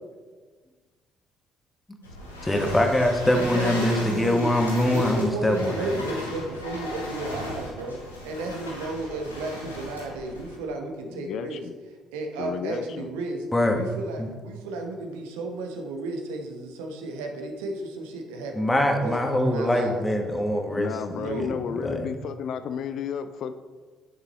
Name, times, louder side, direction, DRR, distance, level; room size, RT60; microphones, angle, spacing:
sound 1, 2.0-10.6, left 1 dB, 85° left, 1.0 m, -37 dB
voice 1, 2.4-6.2 13.5-13.8 14.2-14.3 18.5-20.9 21.3-22.1, left 1 dB, 15° left, 3 dB, 1.4 m, -24 dB
voice 2, 3.3-4.5 4.8-11.6 12.1-13.4 13.7-18.7 19.0-20.1 21.0-21.6, right 2 dB, 70° right, 3 dB, 1.0 m, -33 dB
voice 3, 11.1-11.7 12.4-13.1 20.7-23.5, left 8 dB, 55° left, 10 dB, 0.4 m, -32 dB
10.5 x 6.6 x 3.0 m, 1.4 s
figure-of-eight pair, 45°, 0 cm